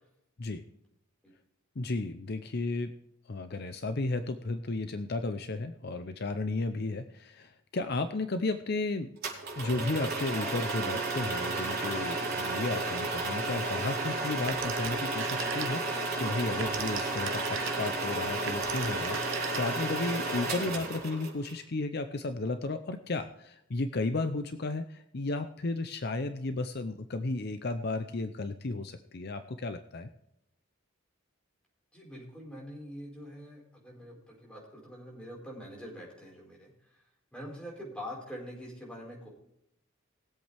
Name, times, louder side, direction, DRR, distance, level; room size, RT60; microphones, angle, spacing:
voice 1, 1.8-2.9 3.3-9.1 9.6-30.1, left 2 dB, 50° left, 9 dB, 0.6 m, -33 dB
sound 1, 9.2-21.5, right 2 dB, 50° right, 4.3 m, -32 dB
Telephone, 14.5-16.0 16.4-20.0, right 7 dB, 65° right, 1.1 m, -39 dB
voice 2, 31.9-36.7 37.3-39.3, equal, 5° left, -3 dB, 4.8 m, -44 dB
20.5 x 8.0 x 3.4 m, 0.80 s
head